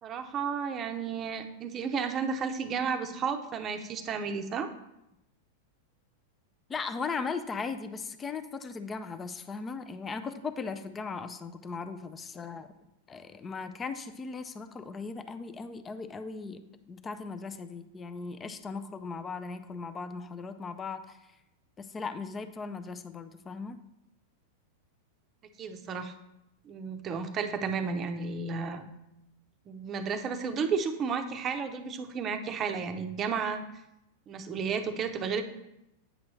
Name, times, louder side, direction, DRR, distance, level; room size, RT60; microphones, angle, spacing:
voice 1, 0.0-4.7 25.6-26.1 26.6-28.8 29.7-33.6 34.3-35.4, right 5 dB, 30° right, 7 dB, 0.7 m, -32 dB
voice 2, 6.7-12.7 13.1-21.3 21.8-23.8, left 4 dB, 20° left, 10 dB, 0.4 m, -38 dB
8.7 x 6.1 x 3.2 m, 0.86 s
supercardioid pair, 140°, 0 cm